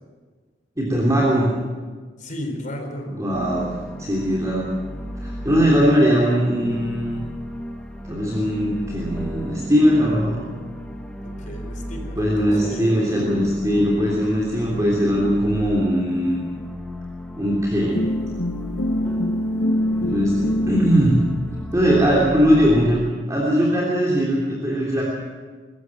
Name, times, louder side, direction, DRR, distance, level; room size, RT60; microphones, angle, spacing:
voice 1, 0.8-1.6 3.1-3.7 4.0-4.7 5.2-7.2 8.1-10.4 12.2-16.4 17.4-18.0 20.0-21.2 21.7-23.0 23.3-25.0, equal, 20° right, -4 dB, 3.3 m, -20 dB
voice 2, 2.2-3.1 11.2-12.9, left 1 dB, 45° left, 3 dB, 4.1 m, -34 dB
sound 1, 3.3-23.1, equal, 5° left, 1.4 m, -35 dB
sound 2, 17.9-21.2, left 1 dB, 65° left, 1.0 m, -24 dB
24.0 x 14.0 x 7.9 m, 1.5 s
head